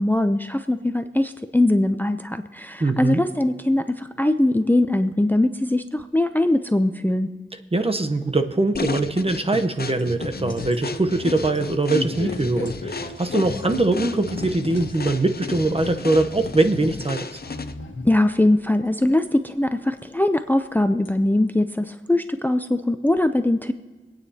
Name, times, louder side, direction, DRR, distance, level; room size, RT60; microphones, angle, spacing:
voice 1, 0.0-7.3 18.0-23.7, left 1 dB, 10° left, 9 dB, 0.5 m, -21 dB
voice 2, 2.8-3.2 7.7-17.3, right 2 dB, 30° right, 7 dB, 0.8 m, -22 dB
sound 1, 8.7-17.9, left 4 dB, 50° left, 0.7 m, -34 dB
sound 2, 9.6-15.3 15.6-16.6 16.9-18.1 19.1-19.2 20.4-20.5 21.0-21.1, left 2 dB, 75° left, 1.3 m, -35 dB
25.5 x 9.1 x 2.8 m, 1.4 s
wide cardioid pair, 55°, 20 cm